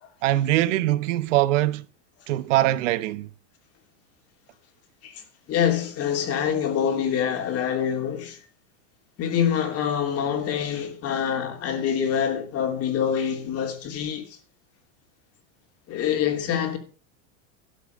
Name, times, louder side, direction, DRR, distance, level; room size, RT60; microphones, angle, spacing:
voice 1, 0.2-1.8 2.3-3.3, right 15 dB, 70° right, 1.0 m, -22 dB
voice 2, 5.5-8.4 9.2-14.4 15.9-16.8, left 8 dB, 40° left, 3.0 m, -25 dB
13.0 x 7.3 x 6.3 m
supercardioid pair, 130°, 38 cm